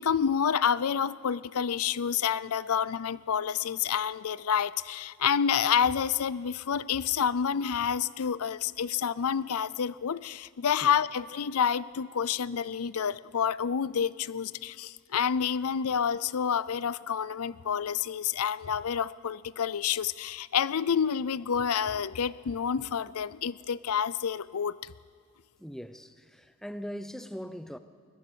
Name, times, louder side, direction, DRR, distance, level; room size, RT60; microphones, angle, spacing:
voice 1, 0.0-24.9, left 7 dB, 90° left, 0.5 m, -28 dB
voice 2, 25.6-27.8, equal, ahead, 0.7 m, -40 dB
21.5 x 20.0 x 6.9 m
head